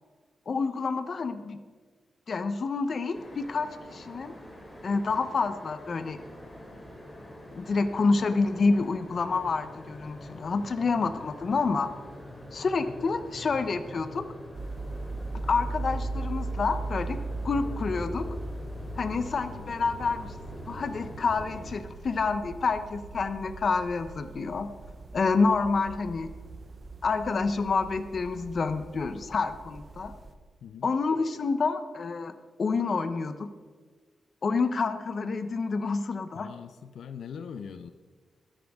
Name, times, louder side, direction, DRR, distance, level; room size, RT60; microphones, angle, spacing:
voice 1, 0.5-1.6 2.3-4.3 4.8-6.2 7.5-11.9 12.5-14.2 15.5-17.2 17.4-18.2 19.0-20.3 20.7-24.7 25.1-26.3 27.0-30.1 30.8-32.3 32.6-33.5 34.4-36.5, left 4 dB, 45° left, 9 dB, 0.9 m, -28 dB
sound 1, 3.1-21.7, equal, 10° left, 2.8 m, -44 dB
sound 2, 14.5-30.3, right 2 dB, 35° right, 0.9 m, -39 dB
voice 2, 30.6-30.9 36.3-37.9, left 7 dB, 80° left, 9 dB, 0.6 m, -41 dB
22.0 x 10.0 x 3.7 m, 1.5 s
wide cardioid pair, 140°, 0 cm